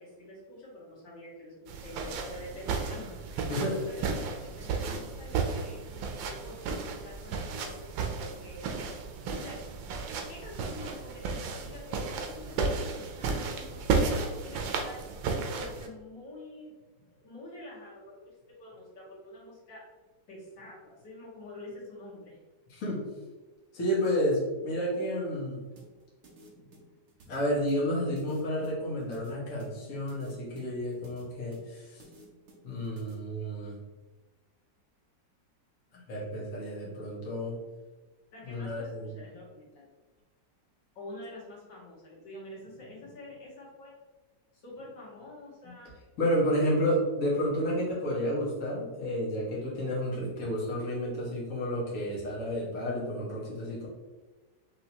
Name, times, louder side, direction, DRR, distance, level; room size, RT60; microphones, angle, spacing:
voice 1, 0.0-3.5 3.9-8.7 9.3-9.7 10.0-15.0 15.5-16.7 17.1-18.3 18.6-19.9 20.3-22.4 26.6-26.8 38.3-39.9 41.0-43.9 44.5-45.9 46.5-46.7, left 1 dB, 75° left, -5 dB, 1.9 m, -47 dB
sound 1, 1.7-15.9, right 4 dB, 90° right, 1.4 m, -33 dB
voice 2, 3.5-3.8 22.7-23.0 23.7-25.6 27.3-32.0 32.6-33.8 35.9-37.6 38.4-39.1 46.2-53.9, equal, 50° left, -5 dB, 1.5 m, -31 dB
sound 2, 25.8-33.1, right 2 dB, 50° right, 0.9 m, -55 dB
5.5 x 2.8 x 2.9 m, 1.2 s
omnidirectional pair, 2.0 m